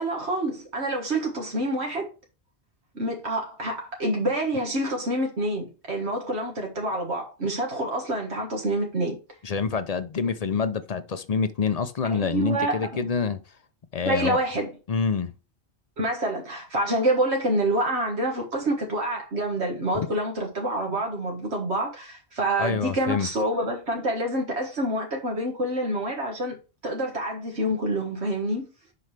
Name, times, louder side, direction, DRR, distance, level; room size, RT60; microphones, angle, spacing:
voice 1, 0.0-2.1 3.0-9.2 12.1-13.0 14.1-14.7 16.0-26.6 26.8-28.7, right 1 dB, 85° right, 1.8 m, -27 dB
voice 2, 9.4-13.4 13.9-14.4 14.9-15.3 22.6-23.3, left 5 dB, 45° left, 0.5 m, -26 dB
7.7 x 5.4 x 3.3 m
omnidirectional pair, 1.1 m